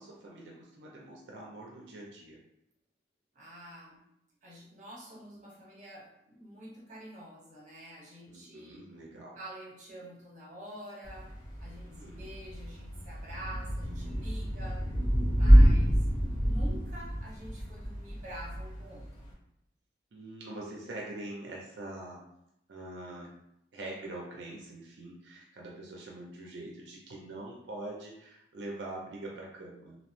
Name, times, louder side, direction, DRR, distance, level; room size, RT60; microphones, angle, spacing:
voice 1, 0.0-2.4 8.3-9.4 11.8-12.3 14.5-15.0 20.1-22.2 22.7-23.3 23.7-30.0, right 2 dB, 85° right, -2 dB, 0.5 m, -44 dB
voice 2, 3.3-4.0 4.4-8.9 9.3-11.3 11.6-14.8 15.3-19.3, equal, 45° right, -4 dB, 1.0 m, -47 dB
Thunder / Rain, 11.0-19.3, equal, 25° left, 1.0 m, -26 dB
2.7 x 2.0 x 3.0 m, 0.80 s
head